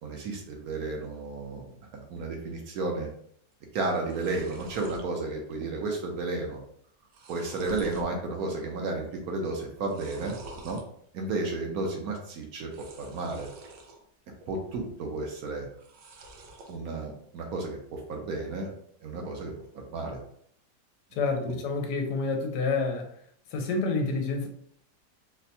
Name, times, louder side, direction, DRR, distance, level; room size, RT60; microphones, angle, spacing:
voice 1, 0.0-3.1 3.7-6.6 7.3-10.8 11.1-12.7 13.0-13.5 14.5-15.7 16.7-18.7 19.0-20.2, right 3 dB, 65° right, 1 dB, 1.1 m, -33 dB
sound 1, 3.5-3.6 3.8-5.1 5.5-5.9 6.2-6.3 6.8-8.1 8.6-9.0 9.8-10.8 12.6-14.0 14.4-15.0 15.7-16.8, right 2 dB, 85° right, 1.3 m, -47 dB
voice 2, 21.1-23.1 23.5-24.5, left 3 dB, 80° left, 4 dB, 1.2 m, -28 dB
4.2 x 2.2 x 2.7 m, 0.65 s
omnidirectional pair, 1.8 m